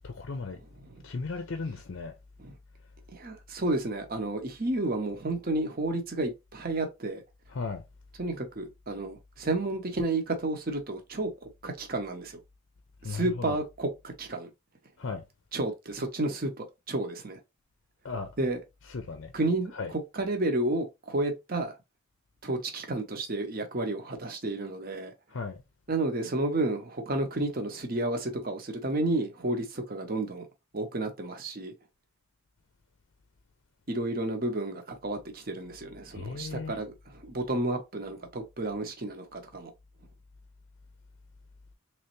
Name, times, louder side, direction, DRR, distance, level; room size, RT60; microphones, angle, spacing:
voice 1, 0.0-0.6 1.0-2.1 7.5-7.8 13.0-13.6 15.0-15.2 18.0-18.3 18.8-19.3 19.7-19.9 25.3-25.6 36.1-36.8, left 4 dB, 55° left, 0.5 m, -36 dB
voice 2, 3.1-7.2 8.2-12.4 13.0-14.5 15.5-17.4 18.4-18.6 19.3-21.7 22.4-25.1 25.9-30.5 30.7-31.7 33.9-39.7, right 2 dB, 40° right, 0.8 m, -31 dB
3.4 x 3.1 x 3.0 m
head